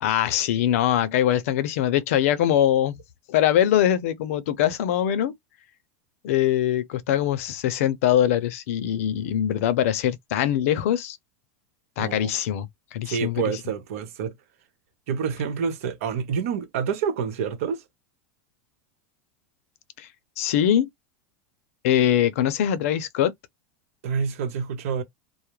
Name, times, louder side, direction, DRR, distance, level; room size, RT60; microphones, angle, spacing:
voice 1, 0.0-3.0 3.3-5.3 6.2-11.2 12.0-13.5 20.0-20.1 20.4-20.9 21.8-23.3, left 11 dB, 75° left, 0.5 m, -22 dB
voice 2, 12.0-12.3 13.1-14.3 15.1-17.8 24.0-25.0, right 6 dB, 75° right, 0.9 m, -28 dB
2.4 x 2.0 x 3.0 m
supercardioid pair, 145°, 8 cm